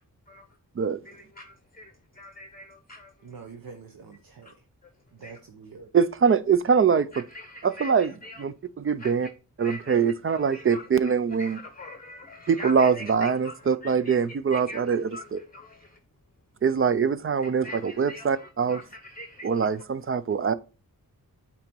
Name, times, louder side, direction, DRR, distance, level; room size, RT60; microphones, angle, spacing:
voice 1, 1.1-3.1 5.2-5.4 7.1-8.4 9.0-9.1 9.6-11.1 11.4-13.6 13.8-14.2 14.5-15.2 15.5-16.0 17.6-19.7, left 1 dB, 25° left, 0.7 m, -43 dB
voice 2, 3.2-4.5 5.1-5.9, right 5 dB, 70° right, 0.9 m, -45 dB
voice 3, 5.9-7.2 7.6-8.1 8.4-9.3 9.6-11.6 12.5-15.4 16.6-18.8 19.4-20.5, right 6 dB, 40° right, 0.4 m, -23 dB
8.7 x 3.0 x 4.5 m
wide cardioid pair, 95°, 35 cm